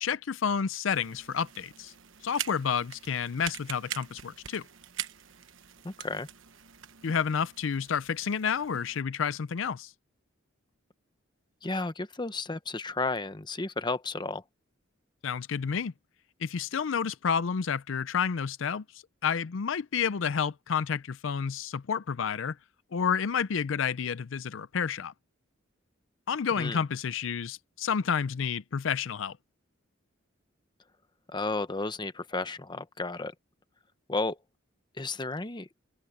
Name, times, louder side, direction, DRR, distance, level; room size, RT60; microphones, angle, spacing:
voice 1, 0.0-1.9 2.2-4.6 7.0-9.9 15.2-15.9 16.4-18.8 19.2-22.6 22.9-25.1 26.3-29.4, left 6 dB, 70° left, 0.5 m, -30 dB
sound 1, 0.9-9.0, right 10 dB, 70° right, 1.2 m, -43 dB
voice 2, 5.8-6.3 11.6-14.4 26.6-26.8 31.3-33.3 34.1-34.4 35.0-35.7, left 3 dB, 20° left, 0.9 m, -33 dB
open air
head